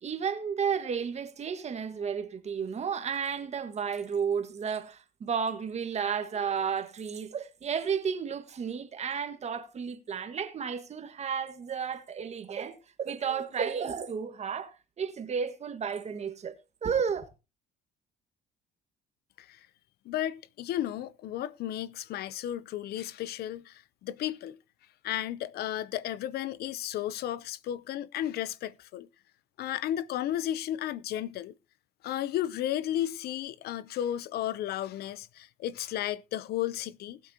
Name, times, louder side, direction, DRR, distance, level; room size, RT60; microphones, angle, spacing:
voice 1, 0.0-16.5 16.8-17.3, right 7 dB, 40° right, 1.7 m, -32 dB
voice 2, 20.1-24.6 25.0-29.1 29.6-31.5 32.0-37.2, left 12 dB, 70° left, 0.7 m, -33 dB
20.0 x 8.4 x 2.9 m
cardioid pair, 110°, 17 cm